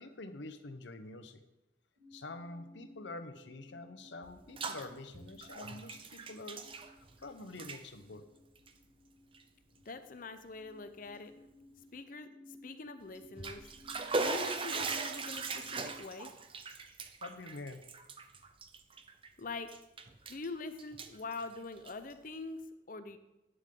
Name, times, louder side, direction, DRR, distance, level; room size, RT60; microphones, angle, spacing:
voice 1, 0.0-1.4 2.1-8.2 17.2-17.8, left 2 dB, 85° left, 9 dB, 0.9 m, -47 dB
sound 1, 2.0-16.0, left 1 dB, 80° right, 2.0 m, -59 dB
Bathtub (filling or washing), 4.2-4.9 5.1-7.2 7.5-7.8 8.6-8.7 9.3-9.4 9.9-10.0 13.2-19.3 19.7-20.5 20.8-22.1, right 3 dB, 30° right, 0.7 m, -39 dB
voice 2, 9.9-11.3 11.9-13.7 14.2-16.3 19.4-19.7 20.3-23.2, left 3 dB, 50° left, 10 dB, 0.7 m, -44 dB
11.0 x 9.3 x 3.8 m, 0.94 s
head